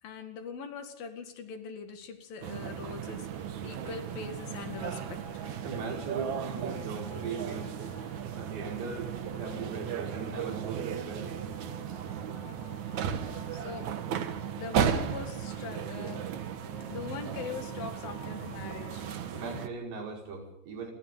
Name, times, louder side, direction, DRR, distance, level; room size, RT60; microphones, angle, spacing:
voice 1, 0.0-5.4 13.5-14.0 14.6-16.3 16.9-19.1, left 6 dB, 65° left, 7 dB, 3.6 m, -42 dB
sound 1, 2.4-19.7, right 8 dB, 55° right, 2.3 m, -35 dB
sound 2, 3.2-19.7, left 2 dB, 80° left, 7.1 m, -52 dB
voice 2, 5.6-7.7 8.4-11.3 19.3-20.9, right 4 dB, 90° right, 2 dB, 7.4 m, -39 dB
29.0 x 24.5 x 3.8 m, 0.79 s
omnidirectional pair, 4.7 m